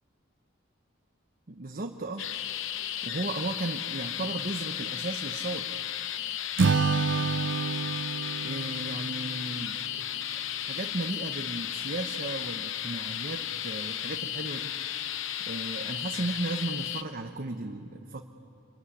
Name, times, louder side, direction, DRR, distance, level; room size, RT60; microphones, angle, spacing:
voice 1, 1.5-2.2 3.0-5.7 8.4-9.8 10.6-18.2, right 2 dB, 45° right, 4 dB, 1.0 m, -35 dB
sound 1, 2.2-17.0, left 10 dB, 65° left, 0.8 m, -34 dB
Acoustic guitar / Strum, 6.6-9.9, right 4 dB, 65° right, 0.5 m, -28 dB
25.5 x 21.5 x 9.8 m, 2.5 s
head